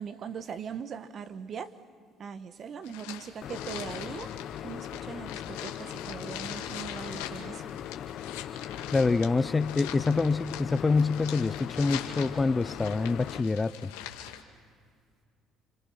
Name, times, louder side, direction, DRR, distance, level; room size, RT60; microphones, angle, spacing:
voice 1, 0.0-1.7 2.2-4.3 4.6-7.7, right 7 dB, 50° right, 1.4 m, -40 dB
sound 1, 2.8-14.4, left 11 dB, 90° left, 1.9 m, -43 dB
sound 2, 3.4-13.4, left 10 dB, 60° left, 0.9 m, -40 dB
voice 2, 8.9-13.9, left 3 dB, 25° left, 0.7 m, -26 dB
30.0 x 26.0 x 5.9 m
supercardioid pair, 75°, 0 cm